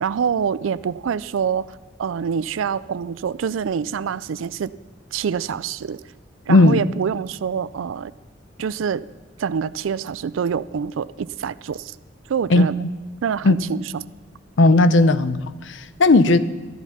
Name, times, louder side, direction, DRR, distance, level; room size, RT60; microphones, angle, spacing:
voice 1, 0.0-1.7 2.0-4.7 5.1-6.0 6.5-8.1 8.6-9.1 9.4-11.9 12.3-12.8 13.2-14.1 16.3-16.4, right 7 dB, 85° right, 17 dB, 0.4 m, -26 dB
voice 2, 6.5-6.8 12.5-12.7 13.4-13.6 14.6-16.4, left 2 dB, 70° left, 13 dB, 0.6 m, -15 dB
13.5 x 11.0 x 5.8 m, 1.3 s
head